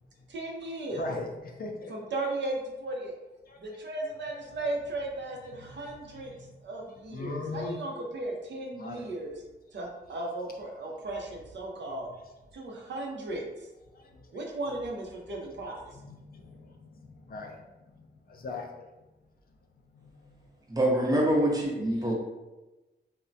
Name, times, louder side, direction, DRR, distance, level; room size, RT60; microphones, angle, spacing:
voice 1, 0.3-1.1 1.9-3.2 3.6-6.3 6.6-9.4 9.7-12.1 12.5-13.4 14.3-15.8, right 2 dB, 75° right, 0 dB, 0.6 m, -36 dB
voice 2, 0.9-1.9 3.5-3.6 5.1-6.5 7.1-7.8 8.7-9.1 11.2-11.3 14.1-14.4 15.6-18.9 19.9-20.5 21.9-22.1, left 2 dB, 55° left, 3 dB, 0.4 m, -41 dB
voice 3, 20.7-22.1, right 1 dB, 20° right, -2 dB, 0.6 m, -25 dB
3.2 x 2.1 x 2.6 m, 1.1 s
wide cardioid pair, 125°, 19 cm